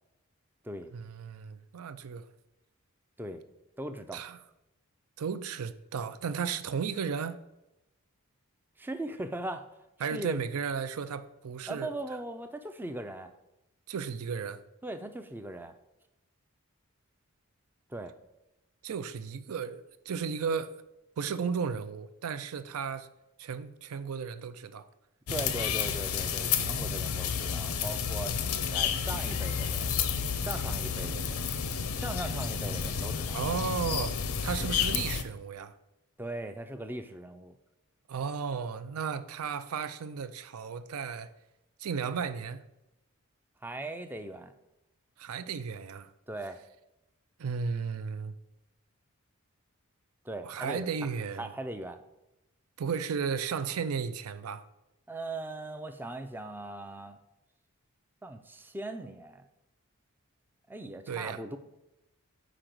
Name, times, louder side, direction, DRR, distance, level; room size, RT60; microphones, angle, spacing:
voice 1, 0.9-2.3 4.1-4.4 5.2-7.4 10.0-11.9 13.9-14.6 18.8-20.7 21.2-23.1 23.4-24.9 26.5-26.9 33.3-35.7 38.1-41.3 41.8-42.6 45.2-46.1 47.4-48.4 50.4-51.5 52.8-54.6 61.1-61.4, right 6 dB, 75° right, 0.4 m, -34 dB
voice 2, 3.8-4.2 8.8-9.7 10.1-10.4 11.7-13.3 14.8-15.7 17.9-18.1 25.3-29.9 30.3-31.5 31.9-33.4 36.2-37.6 43.6-44.5 46.3-46.6 50.2-50.9 51.4-52.0 55.1-57.2 58.2-59.4 60.7-61.6, right 1 dB, 10° right, 0.4 m, -39 dB
sound 1, 25.3-35.2, left 7 dB, 85° left, 0.6 m, -31 dB
5.1 x 4.9 x 6.0 m
head